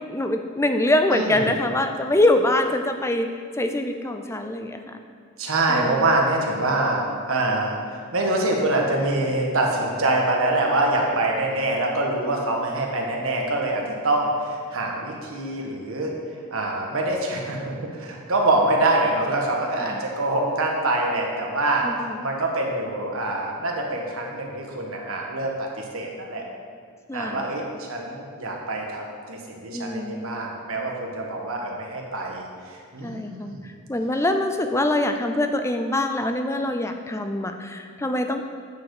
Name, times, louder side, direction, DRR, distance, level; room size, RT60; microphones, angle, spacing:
voice 1, 0.1-3.3 3.6-5.0 5.7-6.0 19.8-20.0 21.8-22.2 27.1-27.5 29.7-30.4 33.0-33.6 33.9-38.4, left 1 dB, 10° left, 6 dB, 0.5 m, -24 dB
voice 2, 1.1-1.5 5.4-16.1 16.5-21.8 22.2-26.4 27.1-33.7, right 2 dB, 70° right, -1 dB, 1.5 m, -25 dB
9.1 x 6.7 x 4.9 m, 2.3 s
head